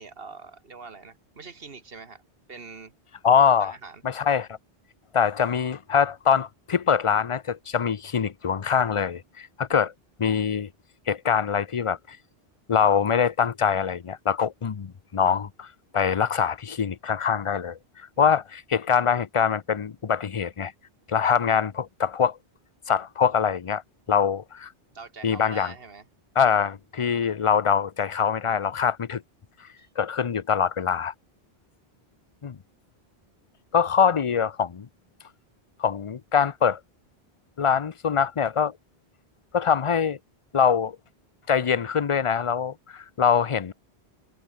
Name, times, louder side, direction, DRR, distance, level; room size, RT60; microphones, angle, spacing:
voice 1, 0.0-2.2 2.5-2.9 3.6-4.0 24.9-26.1 29.8-29.9, right 4 dB, 65° right, 1.9 m, -43 dB
voice 2, 3.2-3.7 4.0-4.6 5.1-9.9 10.2-10.7 11.1-12.2 12.7-15.7 15.9-20.7 21.1-22.4 22.9-23.8 24.1-24.7 25.2-25.7 26.4-29.2 30.0-31.1 32.4-32.6 33.7-34.9 35.8-36.8 37.6-38.7 39.5-40.2 40.5-41.0 41.5-43.7, left 7 dB, 35° left, 0.6 m, -23 dB
omnidirectional pair, 1.0 m